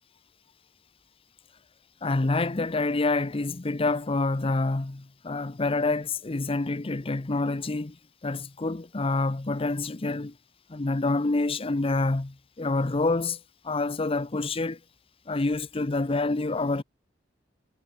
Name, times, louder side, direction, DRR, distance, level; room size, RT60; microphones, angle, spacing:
voice 1, 2.0-8.0 8.2-10.3 10.7-13.4 13.6-14.8 15.3-16.8, left 3 dB, 30° left, 0.7 m, -27 dB
head